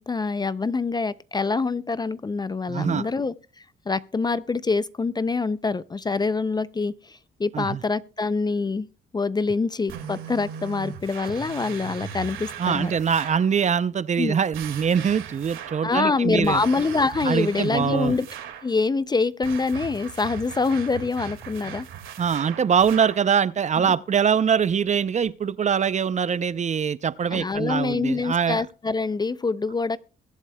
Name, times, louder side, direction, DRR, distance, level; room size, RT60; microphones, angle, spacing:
voice 1, 0.0-8.9 9.1-12.9 14.2-14.4 15.8-18.3 18.6-21.9 23.8-23.9 27.3-30.0, left 4 dB, 20° left, 0.4 m, -25 dB
voice 2, 2.7-3.1 7.5-7.8 12.6-16.6 17.2-18.1 22.2-28.6, right 7 dB, 35° right, 0.5 m, -23 dB
sound 1, 9.9-13.5 14.5-15.9 16.4-18.7 19.4-23.3, right 8 dB, 85° right, 2.0 m, -38 dB
21.5 x 8.2 x 2.2 m
cardioid pair, 90°, 20 cm